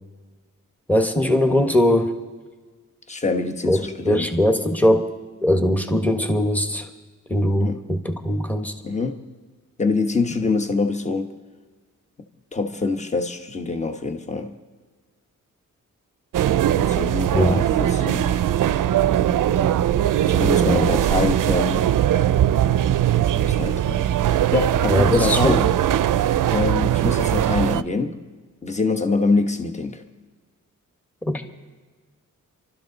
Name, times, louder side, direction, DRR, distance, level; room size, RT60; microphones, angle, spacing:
voice 1, 0.9-2.1 3.7-5.1 5.4-6.9 7.3-8.7 17.3-17.6 20.6-20.9 24.9-25.6 31.2-31.4, left 1 dB, 5° left, 5 dB, 1.3 m, -20 dB
voice 2, 3.1-4.3 7.6-7.8 8.8-9.2 9.8-11.3 12.5-14.6 16.7-18.4 20.3-21.9 23.1-24.0 24.5-25.7 26.5-28.2 28.6-30.0, left 3 dB, 20° left, 6 dB, 1.1 m, -25 dB
sound 1, 16.3-27.8, right 11 dB, 80° right, 0.5 m, -20 dB
27.0 x 13.0 x 4.0 m, 1.4 s
wide cardioid pair, 130°, 31 cm